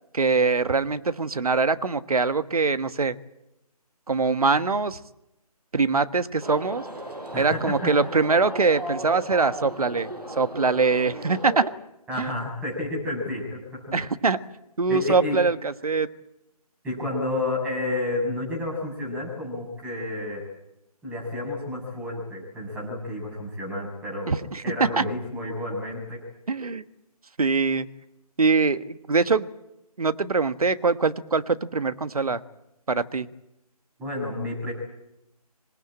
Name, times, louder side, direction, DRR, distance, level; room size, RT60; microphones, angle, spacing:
voice 1, 0.1-3.2 4.1-5.0 5.7-6.9 7.4-11.6 12.2-12.4 13.9-14.4 14.8-16.1 24.3-25.0 26.5-26.8 27.4-27.9 28.4-29.5 30.0-32.4 32.9-33.3, right 4 dB, 65° right, 12 dB, 1.3 m, -23 dB
sound 1, 6.4-11.7, right 1 dB, 85° right, 6.2 m, -36 dB
voice 2, 7.3-7.9 12.1-13.9 14.9-15.4 16.8-20.4 21.0-24.3 24.6-26.2 34.0-34.7, left 2 dB, 5° right, -2 dB, 6.7 m, -30 dB
26.5 x 18.5 x 8.8 m, 0.90 s
figure-of-eight pair, 150°, 20 cm